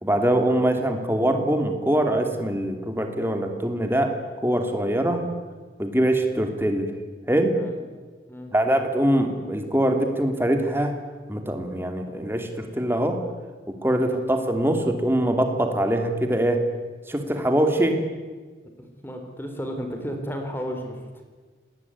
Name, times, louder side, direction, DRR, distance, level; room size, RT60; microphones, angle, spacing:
voice 1, 0.0-4.1 4.4-5.2 5.8-6.9 7.3-7.6 8.5-10.9 11.3-13.2 13.7-16.6 17.1-18.0, right 1 dB, 15° right, 5 dB, 2.8 m, -23 dB
voice 2, 19.0-21.2, equal, 10° left, 4 dB, 3.6 m, -33 dB
27.5 x 20.0 x 9.7 m, 1.4 s
head